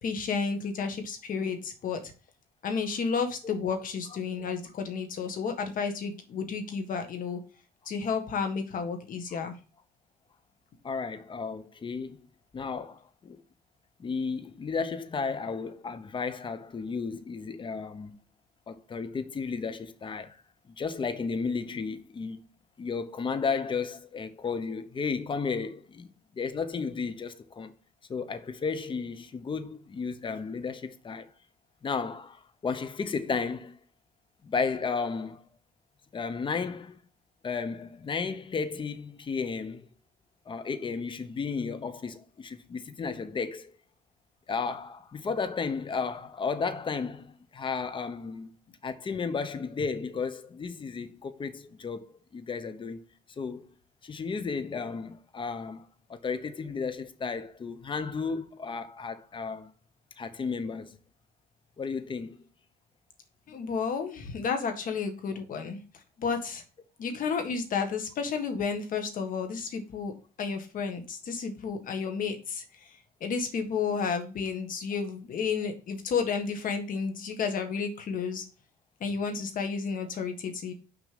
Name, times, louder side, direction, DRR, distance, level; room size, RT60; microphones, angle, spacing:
voice 1, 0.0-2.0 2.6-7.4 7.9-9.6 63.5-65.8 66.2-66.6 67.0-70.1 70.4-78.4 79.0-80.7, left 5 dB, 55° left, 1.7 m, -32 dB
voice 2, 10.8-12.3 12.5-13.4 14.0-18.2 18.7-20.4 20.7-22.4 22.8-27.7 28.1-31.3 31.8-33.8 34.4-35.4 36.1-37.0 37.4-39.9 40.5-43.7 44.5-48.5 48.8-52.0 52.3-53.0 53.4-53.7 54.0-59.7 60.2-61.0 61.8-62.4 67.1-67.2, left 5 dB, 30° left, 0.9 m, -33 dB
6.3 x 5.2 x 5.3 m
cardioid pair, 110°, 17 cm